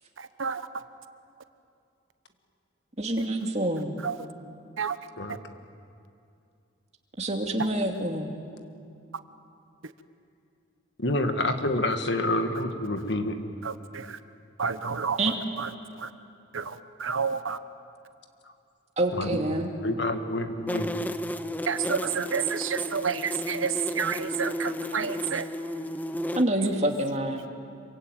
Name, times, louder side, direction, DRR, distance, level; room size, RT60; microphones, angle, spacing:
voice 1, 0.2-0.7 4.0-4.3 4.8-5.0 9.8-9.9 13.6-14.2 14.6-15.7 16.0-16.1 16.5-17.6 21.7-25.5, right 6 dB, 80° right, 11 dB, 1.1 m, -30 dB
voice 2, 3.0-3.9 7.2-8.3 15.2-15.3 19.0-19.7 26.3-27.4, right 1 dB, 35° right, 3 dB, 2.5 m, -27 dB
voice 3, 11.0-13.4 19.1-19.4 19.8-20.9, left 1 dB, 55° left, 6 dB, 1.9 m, -28 dB
sound 1, 20.7-26.4, left 1 dB, 10° left, 0.7 m, -33 dB
26.5 x 23.5 x 9.2 m, 2.4 s
head